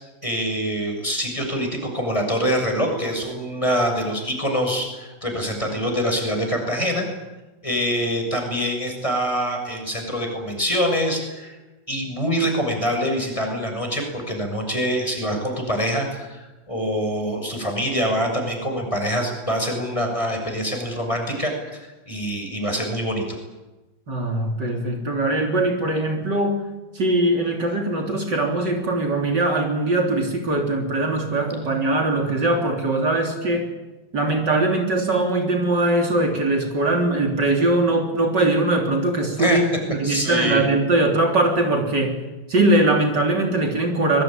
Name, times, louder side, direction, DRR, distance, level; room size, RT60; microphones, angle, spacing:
voice 1, 0.2-7.0 7.6-11.6 11.9-23.2 39.4-39.6 40.0-40.6, equal, 15° left, 3 dB, 6.9 m, -25 dB
voice 2, 24.1-26.6 26.9-33.7 34.1-39.6 39.9-42.2 42.5-44.2, right 2 dB, 60° right, 2 dB, 4.1 m, -21 dB
25.5 x 22.0 x 9.1 m, 1.1 s
omnidirectional pair, 2.1 m